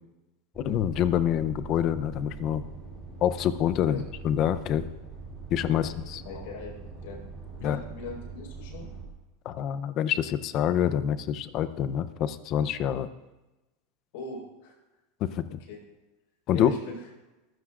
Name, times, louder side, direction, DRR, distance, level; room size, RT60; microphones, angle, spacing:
sound 1, 0.5-9.1, right 4 dB, ahead, 3.5 m, -42 dB
voice 1, 0.6-2.6 3.2-4.9 5.5-6.2 7.6-7.8 9.5-13.1 15.2-15.6 16.5-16.7, left 10 dB, 35° left, 13 dB, 0.6 m, -26 dB
voice 2, 6.2-6.8 7.0-7.2 7.6-8.9 14.1-14.8 15.7-15.8 16.5-17.0, left 4 dB, 65° left, 0 dB, 4.7 m, -40 dB
22.5 x 15.5 x 2.5 m, 1.1 s
supercardioid pair, 165°, 0 cm